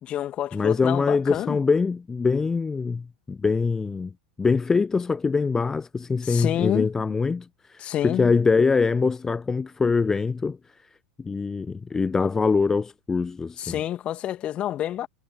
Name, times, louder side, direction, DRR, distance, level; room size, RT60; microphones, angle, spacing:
voice 1, 0.0-1.6 6.2-6.9 7.8-8.3 13.6-15.1, left 12 dB, 35° left, 2.5 m, -28 dB
voice 2, 0.5-4.1 4.4-10.6 11.2-13.8, left 4 dB, 15° left, 0.4 m, -23 dB
figure-of-eight pair, 85°, 3 cm